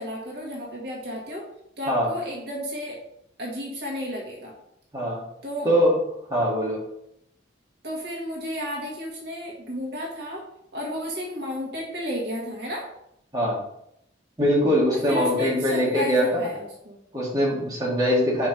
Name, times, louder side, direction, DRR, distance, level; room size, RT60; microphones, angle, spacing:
voice 1, 0.0-1.4 1.8-3.0 3.4-4.5 5.4-5.7 7.8-10.4 10.7-12.9 14.9-17.0, equal, 60° right, -2 dB, 1.6 m, -33 dB
voice 2, 4.9-5.3 5.6-6.0 6.3-6.8 13.3-13.6 14.4-16.5 17.1-18.5, equal, 20° right, -5 dB, 2.0 m, -22 dB
5.0 x 4.8 x 5.1 m, 0.75 s
head